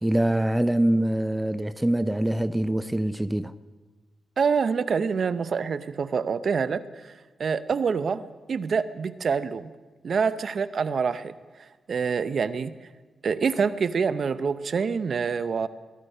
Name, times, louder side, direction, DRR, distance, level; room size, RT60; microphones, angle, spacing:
voice 1, 0.0-3.5, right 1 dB, 10° right, 0.5 m, -24 dB
voice 2, 4.4-7.1 7.4-9.7 10.0-11.3 11.9-12.8 13.2-15.7, right 5 dB, 60° right, 0.6 m, -26 dB
20.0 x 11.5 x 5.5 m
cardioid pair, 70°, 0 cm